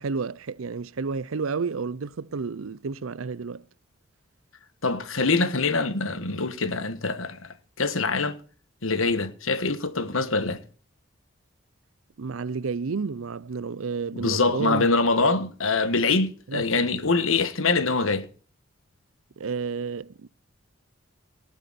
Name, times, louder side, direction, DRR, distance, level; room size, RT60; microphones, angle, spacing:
voice 1, 0.0-3.6 12.2-14.8 15.2-15.4 16.5-16.6 19.4-20.3, right 5 dB, 85° right, 0.6 m, -31 dB
voice 2, 4.8-8.4 8.8-10.6 14.1-18.3, left 3 dB, 80° left, 1.5 m, -24 dB
18.5 x 8.1 x 4.2 m
head